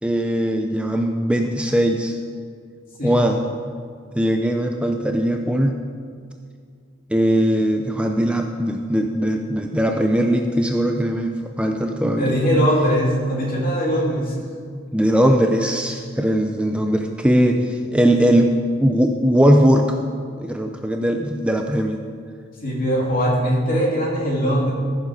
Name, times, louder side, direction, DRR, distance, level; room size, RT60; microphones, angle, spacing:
voice 1, 0.0-2.2 3.0-3.4 4.2-5.8 7.1-12.4 14.9-18.5 18.8-20.0 20.4-22.0, equal, 5° right, 3 dB, 0.5 m, -20 dB
voice 2, 12.2-14.3 18.1-18.3 22.6-24.7, equal, 45° left, -3 dB, 2.8 m, -21 dB
15.0 x 7.3 x 5.0 m, 2.2 s
head